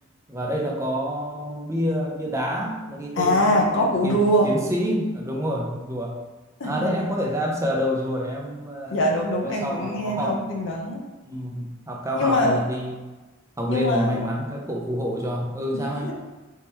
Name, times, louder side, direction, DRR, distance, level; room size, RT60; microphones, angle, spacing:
voice 1, 0.3-6.2 6.6-9.0 9.4-10.6 11.3-13.0 13.6-16.1, equal, 15° right, -1 dB, 0.6 m, -28 dB
voice 2, 3.2-4.5 6.6-7.1 8.9-11.0 12.1-12.6 13.7-14.3 15.7-16.1, equal, 60° left, -1 dB, 0.7 m, -23 dB
3.6 x 2.9 x 4.3 m, 1.2 s
head